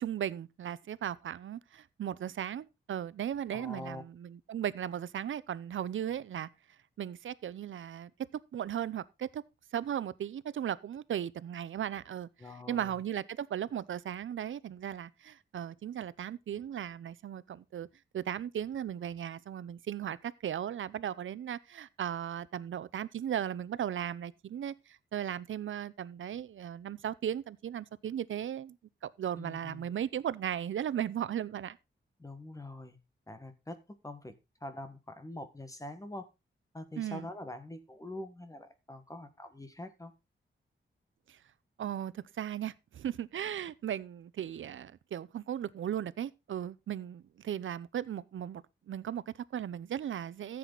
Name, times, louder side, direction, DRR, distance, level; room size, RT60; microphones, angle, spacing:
voice 1, 0.0-6.5 7.0-8.1 8.5-9.4 9.7-12.3 12.7-17.9 18.1-28.8 29.0-31.8 37.0-37.3 41.3-41.4 41.8-50.6, right 10 dB, 90° right, 0.7 m, -37 dB
voice 2, 3.5-4.0 12.4-13.0 29.4-29.9 32.2-33.0 33.3-34.3 34.6-36.3 36.7-40.1, left 1 dB, 15° left, 1.5 m, -44 dB
14.5 x 7.8 x 4.0 m
wide cardioid pair, 140°, 20 cm